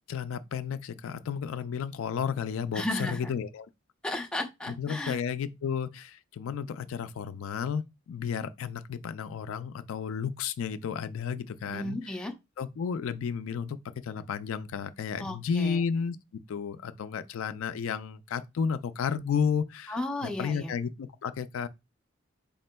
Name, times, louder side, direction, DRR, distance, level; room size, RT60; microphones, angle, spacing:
voice 1, 0.1-3.7 4.8-12.0 12.6-13.8 14.0-16.2 16.5-21.7, left 6 dB, 75° left, 0.3 m, -32 dB
voice 2, 2.7-3.3 4.0-5.2 11.7-12.3 15.2-15.8 19.9-20.7, left 1 dB, 5° left, 0.5 m, -34 dB
4.1 x 3.6 x 2.2 m
head